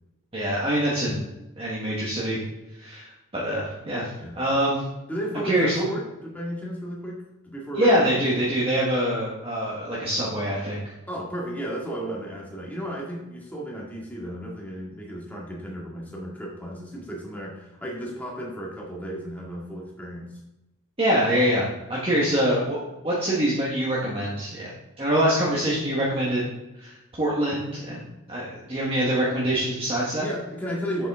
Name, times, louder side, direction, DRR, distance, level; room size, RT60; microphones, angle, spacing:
voice 1, 0.3-1.2 1.6-2.4 2.8-4.1 4.4-4.8 5.4-5.8 7.7-10.8 21.0-24.7 25.0-26.4 26.8-30.2, equal, 25° right, -6 dB, 1.4 m, -24 dB
voice 2, 5.1-8.0 8.3-8.4 11.1-20.4 30.2-31.1, equal, 5° left, -4 dB, 1.9 m, -34 dB
7.5 x 7.2 x 3.6 m, 0.99 s
head